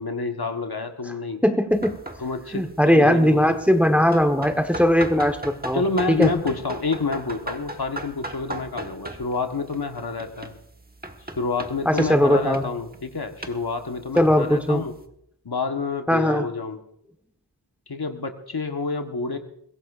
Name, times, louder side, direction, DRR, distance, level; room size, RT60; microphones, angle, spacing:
voice 1, 0.0-1.4 2.2-3.6 5.7-10.5 11.4-14.9 15.4-16.8 17.9-19.4, left 4 dB, 65° left, 5 dB, 1.3 m, -28 dB
voice 2, 1.4-1.9 2.5-5.8 6.1-6.3 11.8-12.7 14.2-14.8 16.1-16.5, equal, 5° right, 7 dB, 1.1 m, -19 dB
sound 1, 1.7-15.1, right 1 dB, 20° right, 1.2 m, -38 dB
22.0 x 16.5 x 2.5 m, 0.75 s
wide cardioid pair, 45°, 41 cm